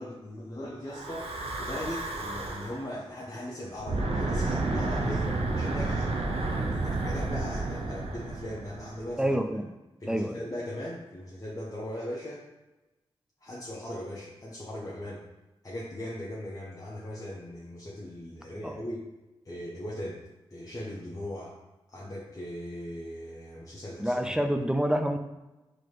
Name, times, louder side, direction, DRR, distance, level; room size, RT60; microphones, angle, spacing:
voice 1, 0.0-1.3 1.6-6.1 6.7-9.3 10.0-12.4 13.4-15.2 15.6-19.1 19.4-20.2 20.5-21.5 21.9-24.4, left 1 dB, 35° left, -6 dB, 0.8 m, -39 dB
Breathing / Wind, 0.9-2.8 3.7-9.1, right 2 dB, 70° right, 0.6 m, -31 dB
voice 2, 9.2-9.7 10.1-10.4 18.6-18.8 24.0-25.2, equal, 5° right, 6 dB, 0.4 m, -27 dB
4.0 x 2.8 x 3.2 m, 1.0 s
cardioid pair, 50°, 10 cm